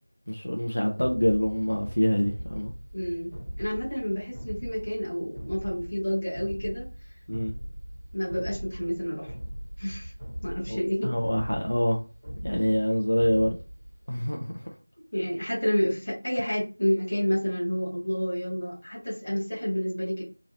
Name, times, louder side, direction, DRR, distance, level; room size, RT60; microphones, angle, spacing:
voice 1, 0.3-2.7 7.3-7.5 10.7-10.8 11.0-12.0 12.4-13.6 14.1-14.7, equal, 50° left, 1 dB, 0.5 m, -25 dB
sound 1, 1.0-14.1, equal, 55° right, 1.1 m, -40 dB
voice 2, 2.9-6.9 8.1-9.3 9.8-10.1 10.4-11.1 15.1-20.2, equal, 25° left, -7 dB, 1.2 m, -29 dB
2.9 x 2.8 x 2.8 m, 0.34 s
figure-of-eight pair, 175°, 0 cm